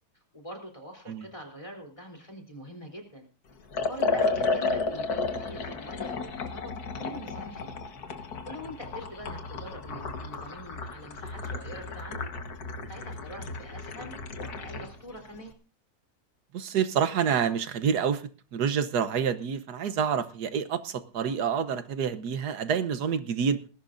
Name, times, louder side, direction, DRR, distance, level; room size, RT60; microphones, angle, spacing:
voice 1, 0.3-3.3 3.9-7.8 8.4-12.3 12.9-15.5, equal, 20° left, 3.5 m, -44 dB
Liquid, 3.7-14.9, left 4 dB, 75° left, 1.9 m, -33 dB
voice 2, 16.5-18.2 18.5-23.6, right 7 dB, 85° right, 1.5 m, -27 dB
20.0 x 16.5 x 2.6 m
omnidirectional pair, 1.7 m